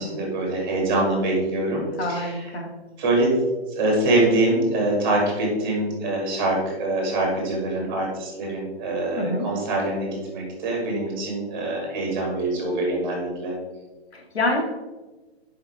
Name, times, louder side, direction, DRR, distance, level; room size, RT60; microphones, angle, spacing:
voice 1, 0.0-2.5 3.0-3.3 3.7-13.6, right 2 dB, 20° right, -2 dB, 2.6 m, -24 dB
voice 2, 2.0-2.7 9.2-9.5 14.1-14.7, left 1 dB, 70° left, 1 dB, 2.3 m, -27 dB
10.5 x 5.6 x 3.5 m, 1.2 s
hypercardioid pair, 170°, 32 cm